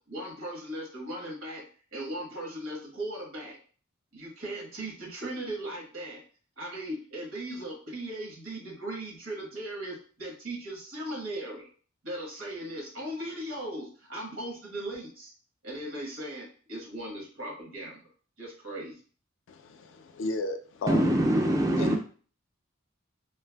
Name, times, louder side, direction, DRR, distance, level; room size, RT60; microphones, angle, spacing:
voice 1, 0.1-1.6 1.9-3.6 4.1-6.2 6.6-11.6 12.0-15.3 15.6-18.0 18.4-19.0, right 1 dB, 80° right, -2 dB, 1.2 m, -38 dB
voice 2, 19.5-21.2 21.8-22.0, left 2 dB, 65° left, 6 dB, 0.4 m, -34 dB
voice 3, 20.9-22.0, right 1 dB, 15° right, 2 dB, 0.3 m, -23 dB
3.2 x 2.4 x 2.2 m, 0.42 s
head